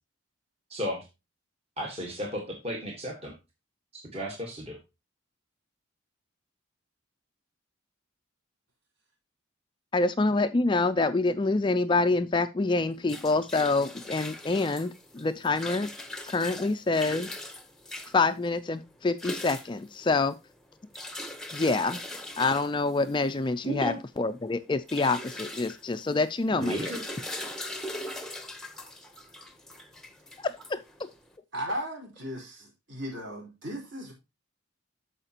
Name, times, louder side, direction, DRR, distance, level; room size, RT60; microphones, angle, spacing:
voice 1, 0.7-1.1 1.8-3.3 3.9-4.8 23.6-23.9 26.5-27.0, equal, 30° right, 1.5 m, -34 dB
voice 2, 9.9-15.9 16.3-17.3 18.1-20.4 21.5-22.0 22.4-26.9 30.4-31.1, left 3 dB, 20° left, 0.3 m, -26 dB
sound 1, 12.8-31.3, left 1 dB, ahead, 0.8 m, -41 dB
voice 3, 31.5-34.1, equal, 55° right, 4.3 m, -36 dB
13.5 x 5.0 x 2.8 m
head